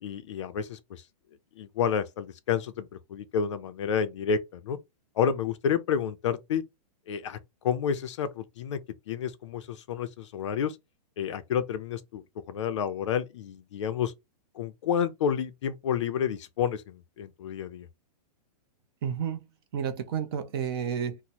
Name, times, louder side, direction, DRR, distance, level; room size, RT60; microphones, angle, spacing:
voice 1, 0.0-1.0 1.6-4.8 5.2-6.6 7.1-7.4 7.6-8.8 9.1-10.8 11.2-14.1 14.6-17.9, left 7 dB, 45° left, 0.5 m, -30 dB
voice 2, 19.0-19.5 19.7-21.2, right 8 dB, 35° right, 0.6 m, -31 dB
2.9 x 2.1 x 4.1 m
hypercardioid pair, 170°, 20 cm